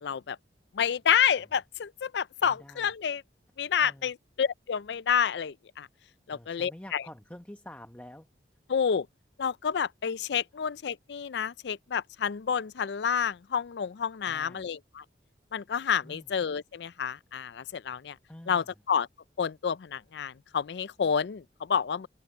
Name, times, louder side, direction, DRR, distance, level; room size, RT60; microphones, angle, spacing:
voice 1, 0.0-0.4 0.7-3.2 3.6-5.9 6.3-7.0 8.7-9.1 9.4-15.0 15.5-18.2 18.5-19.1 19.4-22.1, left 7 dB, 75° left, 0.4 m, -29 dB
voice 2, 2.4-2.9 3.8-4.1 6.3-8.3 14.2-14.7 16.0-16.3 18.3-18.7, left 1 dB, 10° left, 1.0 m, -48 dB
head